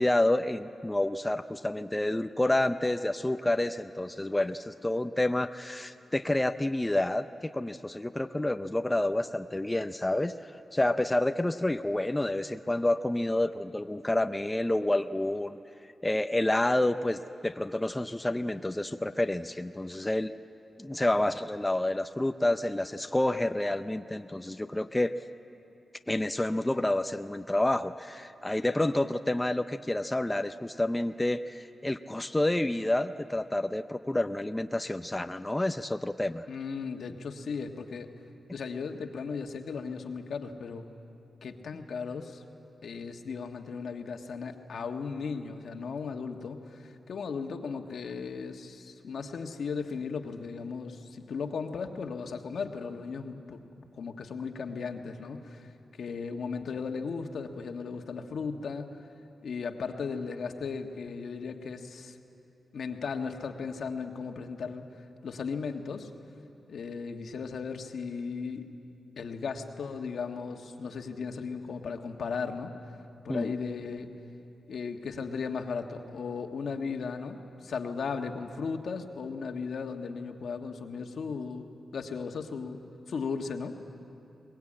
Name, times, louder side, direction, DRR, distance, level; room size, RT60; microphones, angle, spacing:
voice 1, 0.0-15.6 15.8-20.3 20.8-25.1 26.1-36.5 73.3-73.5, left 1 dB, 15° left, 8 dB, 0.5 m, -29 dB
voice 2, 36.5-38.1 38.5-40.8 41.4-42.4 42.8-55.7 56.0-58.9 59.4-62.2 62.7-64.8 65.2-66.1 66.7-68.7 69.2-72.7 73.2-74.1 74.7-81.6 81.9-82.8 83.1-83.8, left 5 dB, 75° left, 4 dB, 1.5 m, -36 dB
22.5 x 20.5 x 8.7 m, 2.7 s
cardioid pair, 95°, 0 cm